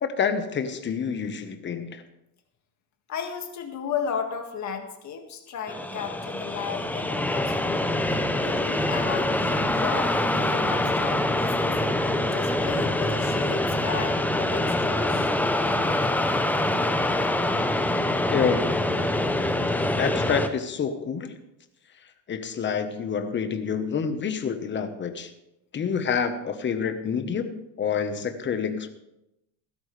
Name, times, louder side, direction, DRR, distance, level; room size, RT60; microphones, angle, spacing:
voice 1, 0.0-2.0 18.3-18.7 19.8-21.3 22.3-25.3 25.7-28.9, left 6 dB, 30° left, 9 dB, 1.2 m, -28 dB
voice 2, 3.1-7.9 8.3-11.7 12.3-15.3, left 7 dB, 45° left, 4 dB, 2.0 m, -34 dB
sound 1, 5.7-20.5, left 1 dB, 5° left, 0.7 m, -25 dB
16.0 x 13.0 x 3.3 m, 0.88 s
cardioid pair, 140°, 40 cm